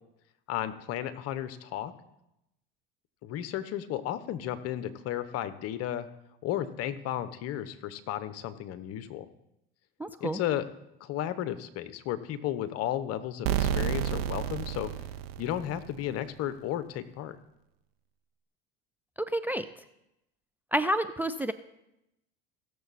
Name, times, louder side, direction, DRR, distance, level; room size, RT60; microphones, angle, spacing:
voice 1, 0.5-1.9 3.2-6.1 6.4-9.3 10.2-10.7 11.0-14.9 15.4-17.4, left 11 dB, 55° left, 13 dB, 1.0 m, -33 dB
voice 2, 10.0-10.4 19.2-19.6 20.7-21.5, right 1 dB, 5° right, 10 dB, 0.4 m, -29 dB
sound 1, 13.5-16.2, right 10 dB, 80° right, 0.8 m, -31 dB
16.0 x 6.9 x 4.2 m, 0.87 s
hypercardioid pair, 90°, 29 cm